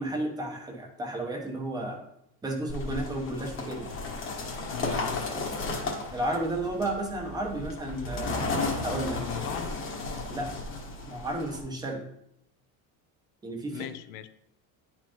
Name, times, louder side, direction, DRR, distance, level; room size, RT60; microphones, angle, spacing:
voice 1, 0.0-2.0 2.4-3.9 6.1-8.4 8.8-9.3 10.3-10.5 11.1-12.0 13.4-13.9, right 1 dB, 10° right, 1 dB, 0.9 m, -32 dB
sound 1, 2.7-11.6, left 3 dB, 35° left, 1.3 m, -34 dB
voice 2, 4.7-5.3 9.2-9.8 13.7-14.3, left 11 dB, 75° left, 12 dB, 0.7 m, -37 dB
10.5 x 4.4 x 3.0 m, 0.76 s
cardioid pair, 175°, 38 cm